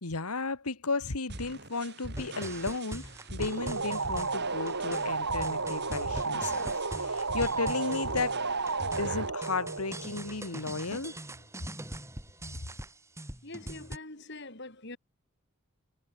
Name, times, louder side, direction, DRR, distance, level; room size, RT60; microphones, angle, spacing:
voice 1, 0.0-6.7 7.0-8.4 9.0-11.2, left 3 dB, 85° left, 1.8 m, -34 dB
sound 1, 1.3-9.3, right 2 dB, 50° right, 7.5 m, -43 dB
sound 2, 2.2-14.0, right 1 dB, 10° right, 7.6 m, -43 dB
sound 3, 3.4-10.8, right 3 dB, 70° right, 3.0 m, -33 dB
voice 2, 13.4-15.0, left 2 dB, 50° left, 4.3 m, -43 dB
head